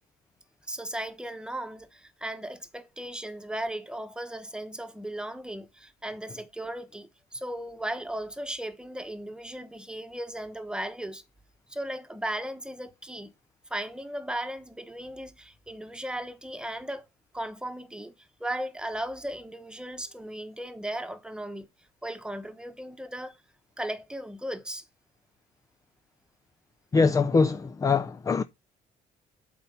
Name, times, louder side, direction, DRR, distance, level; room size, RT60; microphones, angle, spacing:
voice 1, 0.7-11.2 11.7-13.3 13.7-17.0 17.3-18.1 18.4-21.7 22.0-23.4 23.8-24.8, right 1 dB, 5° right, 1.1 m, -36 dB
voice 2, 26.9-28.4, left 4 dB, 20° left, 0.4 m, -23 dB
8.1 x 4.5 x 5.4 m
cardioid pair, 110°, 17 cm